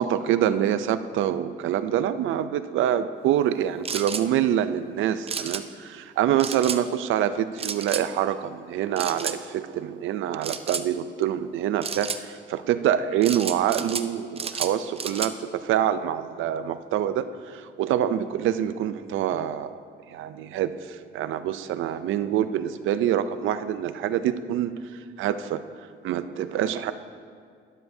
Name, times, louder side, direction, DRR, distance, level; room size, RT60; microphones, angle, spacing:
voice 1, 0.0-19.8 20.1-24.7 25.2-25.6 26.0-26.9, right 10 dB, 80° right, 12 dB, 0.5 m, -26 dB
sound 1, 3.8-4.2 5.3-5.6 6.4-6.8 7.6-8.0 9.0-9.4 10.4-10.9 11.8-12.2 13.2-14.1 14.4-15.3, right 5 dB, 30° right, 0.6 m, -31 dB
12.5 x 11.5 x 2.7 m, 2.1 s
cardioid pair, 90°, 20 cm